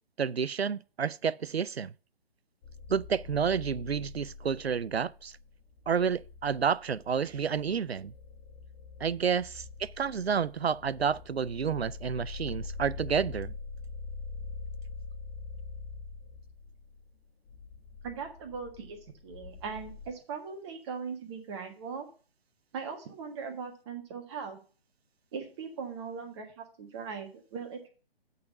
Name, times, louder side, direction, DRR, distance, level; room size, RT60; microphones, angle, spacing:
voice 1, 0.2-1.9 2.9-5.4 5.9-8.1 9.0-13.5, right 6 dB, 85° right, 0.5 m, -30 dB
sound 1, 2.6-20.1, left 4 dB, 20° left, 1.0 m, -44 dB
voice 2, 18.0-19.0 19.2-22.1 22.7-24.6 25.3-27.9, right 6 dB, 25° right, 1.5 m, -39 dB
8.5 x 4.1 x 6.6 m
figure-of-eight pair, 135°, 30 cm